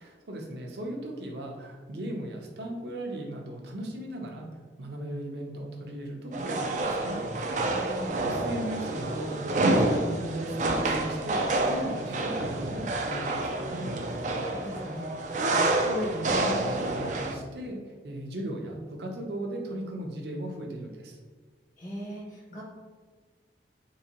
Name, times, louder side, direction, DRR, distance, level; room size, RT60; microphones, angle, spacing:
voice 1, 0.0-4.5 4.8-7.2 8.2-13.9 15.2-17.8 18.0-21.2, right 1 dB, 70° right, 0 dB, 0.7 m, -37 dB
sound 1, 6.3-17.3, right 2 dB, 45° right, 0.3 m, -28 dB
voice 2, 7.7-8.1 14.5-15.1 21.8-22.6, equal, 45° left, -5 dB, 1.3 m, -39 dB
3.9 x 2.7 x 2.9 m, 1.5 s
head